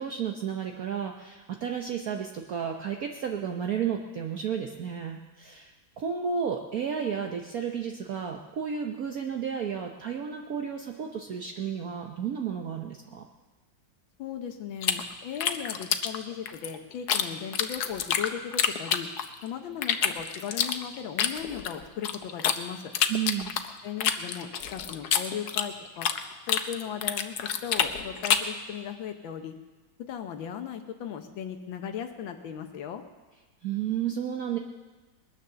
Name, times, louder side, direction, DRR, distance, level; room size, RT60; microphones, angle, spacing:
voice 1, 0.0-13.2 23.1-23.5 33.6-34.6, right 7 dB, 55° right, 2 dB, 1.2 m, -32 dB
voice 2, 14.2-19.1 19.4-22.9 23.8-26.1 26.5-29.5 30.0-33.0, left 8 dB, 80° left, 6 dB, 1.6 m, -37 dB
sound 1, 14.8-17.2 17.5-19.4 19.8-22.6 22.9-26.2 26.5-28.6, left 8 dB, 60° left, 1.3 m, -27 dB
21.0 x 9.6 x 6.8 m, 1.2 s
omnidirectional pair, 2.1 m